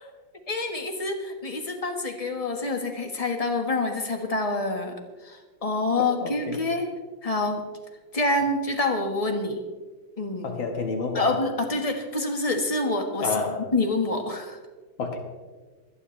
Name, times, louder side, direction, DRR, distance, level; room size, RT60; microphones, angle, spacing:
voice 1, 0.5-4.9 5.2-6.8 7.2-7.6 8.1-9.6 10.2-10.5 11.1-13.4 13.7-14.6, left 2 dB, 20° left, 4 dB, 1.4 m, -27 dB
voice 2, 6.0-6.6 10.4-11.3 13.2-13.6 15.0-15.2, left 4 dB, 80° left, 3 dB, 2.3 m, -29 dB
27.5 x 9.8 x 3.3 m, 1.4 s
omnidirectional pair, 2.1 m